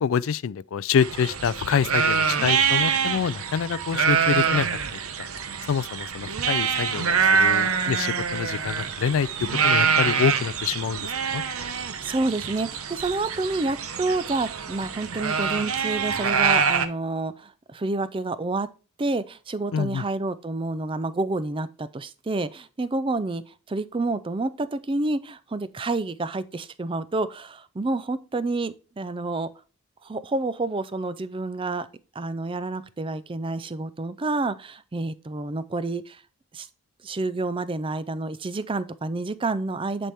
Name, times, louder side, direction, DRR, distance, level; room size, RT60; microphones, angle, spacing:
voice 1, 0.0-5.3 5.7-11.4 19.7-20.0, left 7 dB, 65° left, 0.3 m, -26 dB
sound 1, 1.0-16.9, right 6 dB, 75° right, 0.8 m, -25 dB
voice 2, 12.0-18.7 19.0-23.4 23.7-29.5 30.0-31.9 32.1-36.2 36.5-36.7 37.0-40.1, right 2 dB, 25° right, 0.4 m, -29 dB
10.5 x 4.3 x 3.5 m
head